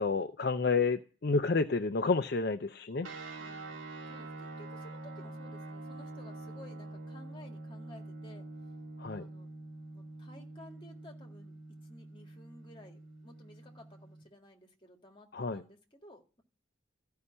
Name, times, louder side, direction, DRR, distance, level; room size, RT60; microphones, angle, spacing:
voice 1, 0.0-3.1 9.0-9.3 15.3-15.6, left 4 dB, 50° left, 8 dB, 0.5 m, -30 dB
sound 1, 3.0-14.2, right 2 dB, 80° right, 2.8 m, -46 dB
voice 2, 3.4-8.5 9.1-9.5 9.9-16.4, left 1 dB, 25° left, 3 dB, 2.1 m, -55 dB
14.0 x 5.6 x 9.8 m, 0.37 s
head